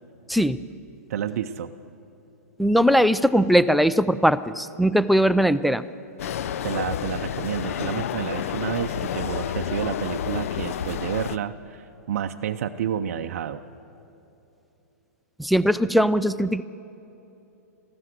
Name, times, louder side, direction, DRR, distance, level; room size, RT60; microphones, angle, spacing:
voice 1, 0.3-0.6 2.6-5.8 15.4-16.6, equal, ahead, 13 dB, 0.3 m, -20 dB
voice 2, 1.1-1.7 6.6-13.6, right 9 dB, 60° right, 7 dB, 0.6 m, -30 dB
sound 1, 6.2-11.4, left 9 dB, 60° left, 0.5 m, -30 dB
14.0 x 13.0 x 7.8 m, 2.9 s
hypercardioid pair, 115°, 9 cm